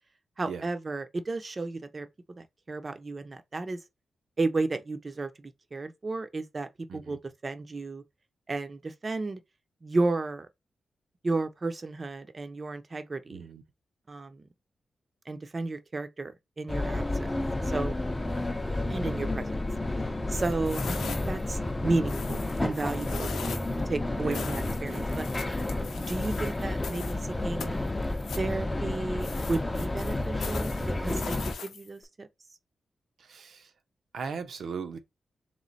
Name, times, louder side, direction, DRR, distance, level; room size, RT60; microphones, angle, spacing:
voice 1, 0.4-3.8 4.4-8.0 8.5-9.4 9.8-10.5 11.2-13.5 14.1-14.5 15.3-17.3 17.7-17.9 18.9-19.6 19.9-23.5 23.9-25.3 26.0-27.8 28.4-30.7 31.0-31.4 31.6-32.3, right 3 dB, 30° right, 0.6 m, -33 dB
voice 2, 13.3-13.6 18.2-18.3 24.2-24.5 33.2-33.7 34.1-35.0, right 6 dB, 70° right, 0.6 m, -38 dB
sound 1, 16.7-31.5, left 2 dB, 15° left, 0.6 m, -31 dB
sound 2, 20.3-21.5 22.1-23.8 24.3-27.2 27.6-28.5 29.2-32.0, left 6 dB, 85° left, 0.7 m, -41 dB
3.3 x 3.1 x 4.0 m
wide cardioid pair, 120°, 0 cm